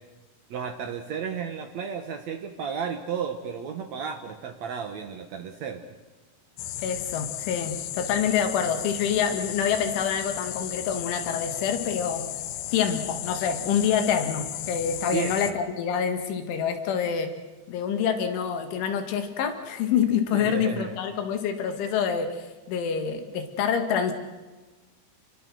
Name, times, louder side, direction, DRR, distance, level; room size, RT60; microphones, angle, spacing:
voice 1, 0.5-5.8 15.1-15.6 20.3-21.0, right 7 dB, 80° right, 5 dB, 1.5 m, -33 dB
sound 1, 6.6-15.5, left 12 dB, 70° left, 2.6 m, -35 dB
voice 2, 6.8-12.3 12.7-17.3 17.7-24.1, left 7 dB, 90° left, 7 dB, 4.5 m, -26 dB
29.5 x 22.5 x 6.3 m, 1.2 s
omnidirectional pair, 5.3 m